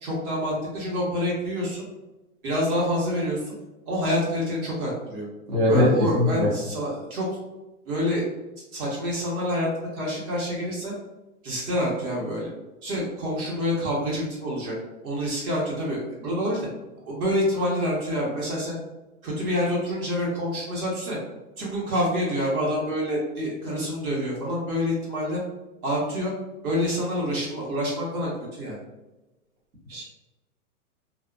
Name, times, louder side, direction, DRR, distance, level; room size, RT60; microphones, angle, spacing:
voice 1, 0.0-1.8 2.4-3.5 3.9-5.3 5.6-7.3 7.8-8.3 8.7-10.9 11.4-12.5 12.8-14.7 15.0-16.7 17.1-18.7 19.2-21.2 21.6-25.4 25.8-26.3 26.6-28.8, equal, 70° right, -5 dB, 1.4 m, -27 dB
voice 2, 5.5-5.9 6.2-6.5 29.9-30.0, left 1 dB, 20° right, -7 dB, 0.8 m, -20 dB
2.8 x 2.4 x 2.2 m, 1.0 s
hypercardioid pair, 135°, 45 cm